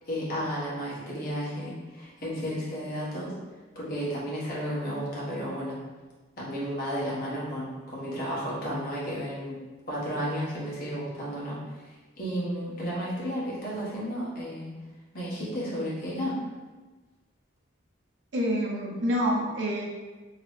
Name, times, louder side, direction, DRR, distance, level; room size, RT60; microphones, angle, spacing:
voice 1, 0.0-3.3 3.7-5.8 6.4-9.6 9.9-11.6 11.8-14.7 15.1-16.4, equal, 50° left, -6 dB, 1.1 m, -33 dB
voice 2, 18.3-19.8, equal, 70° right, -2 dB, 0.7 m, -27 dB
3.0 x 2.9 x 3.1 m, 1.3 s
head